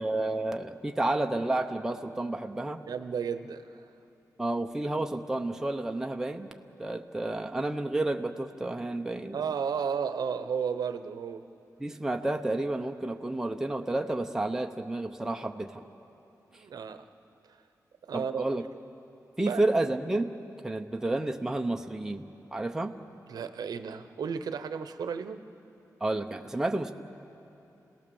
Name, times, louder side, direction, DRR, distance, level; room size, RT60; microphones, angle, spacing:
voice 1, 0.0-2.8 4.4-6.5 6.8-9.4 11.8-15.8 18.1-18.6 19.4-20.3 20.6-22.3 22.5-23.0 26.0-26.9, right 2 dB, 10° right, 4 dB, 0.7 m, -30 dB
voice 2, 2.9-3.9 9.3-11.4 16.5-17.1 18.0-18.5 19.4-19.6 23.3-25.5, right 6 dB, 80° right, 10 dB, 0.8 m, -33 dB
29.0 x 17.5 x 7.0 m, 2.9 s
wide cardioid pair, 180°, 7 cm